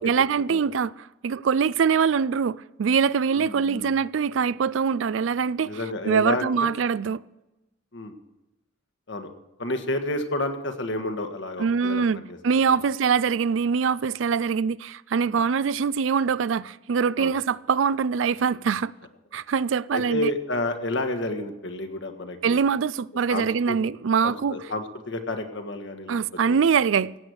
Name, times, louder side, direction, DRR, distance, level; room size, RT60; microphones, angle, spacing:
voice 1, 0.0-7.2 11.6-18.9 19.3-20.3 22.4-24.6 26.1-27.1, right 6 dB, 75° right, 0.4 m, -23 dB
voice 2, 3.3-3.9 5.6-6.7 7.9-8.1 9.1-9.3 9.6-12.4 15.2-15.4 17.2-17.3 19.9-22.6 23.3-23.8 24.2-26.2 26.5-26.6, left 1 dB, 65° left, 1.6 m, -30 dB
16.0 x 8.7 x 6.4 m
head